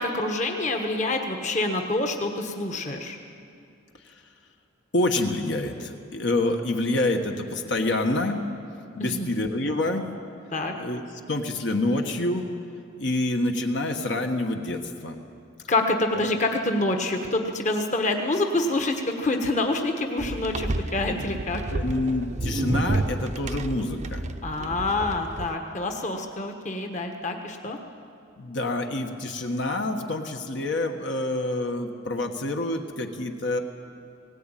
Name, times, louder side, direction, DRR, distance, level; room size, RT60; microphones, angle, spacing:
voice 1, 0.0-3.2 9.0-9.3 10.5-10.7 15.7-21.6 24.4-27.8, left 2 dB, 40° left, 4 dB, 1.3 m, -27 dB
voice 2, 4.9-8.4 8.9-10.1 10.8-11.0 11.3-12.5 13.0-15.2 21.7-24.2 28.4-33.6, left 2 dB, 65° left, 3 dB, 1.4 m, -27 dB
sound 1, 20.2-25.5, right 2 dB, 35° right, 0.7 m, -30 dB
18.0 x 18.0 x 9.1 m, 2.5 s
head